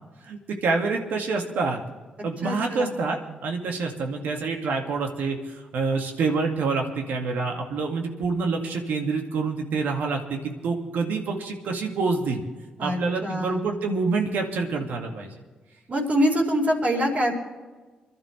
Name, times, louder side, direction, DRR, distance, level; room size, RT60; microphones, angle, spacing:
voice 1, 0.2-1.8 2.2-12.4 12.8-15.3, right 4 dB, 75° right, 2 dB, 2.1 m, -27 dB
voice 2, 2.4-2.9 12.8-13.6 15.9-17.3, equal, 50° right, -2 dB, 4.6 m, -24 dB
26.5 x 12.0 x 3.3 m, 1.3 s
supercardioid pair, 50°, 3 cm